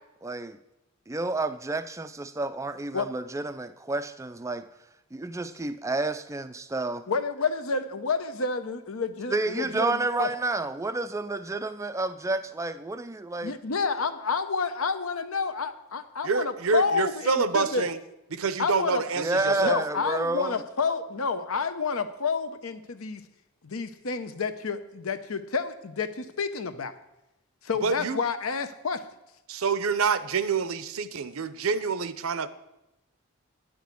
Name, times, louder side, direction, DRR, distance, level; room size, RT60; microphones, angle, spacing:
voice 1, 0.2-0.6 1.1-4.6 5.1-7.0 9.3-13.6 19.2-20.6, right 2 dB, 15° right, 11 dB, 0.4 m, -30 dB
voice 2, 7.1-10.3 13.4-17.9 18.6-19.0 19.6-23.2 23.6-26.9 27.6-29.0, left 4 dB, 70° left, 10 dB, 0.8 m, -29 dB
voice 3, 16.2-18.0 18.3-19.8 27.8-28.2 29.5-32.5, right 5 dB, 70° right, 13 dB, 0.6 m, -27 dB
10.0 x 6.3 x 8.3 m, 0.91 s
head